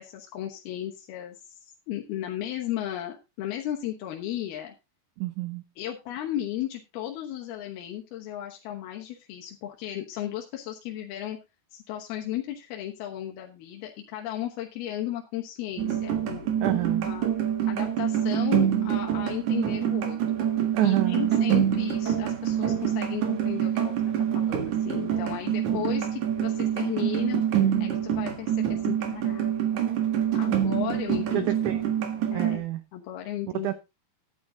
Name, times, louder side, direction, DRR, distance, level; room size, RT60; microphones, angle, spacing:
voice 1, 0.0-4.7 5.8-11.4 11.7-16.7 17.0-17.3 17.7-20.5 20.8-24.0 24.3-27.4 27.8-29.8 30.3-31.7 32.3-32.6 32.9-33.7, left 12 dB, 85° left, 1 dB, 3.2 m, -35 dB
voice 2, 5.2-5.6 16.6-17.1 20.7-21.3 25.7-25.8 31.3-31.8 32.1-32.8 33.6-33.7, right 15 dB, 75° right, 11 dB, 1.8 m, -28 dB
sound 1, 15.8-32.6, right 10 dB, 60° right, 2.8 m, -26 dB
11.0 x 9.7 x 3.9 m, 0.26 s
omnidirectional pair, 4.4 m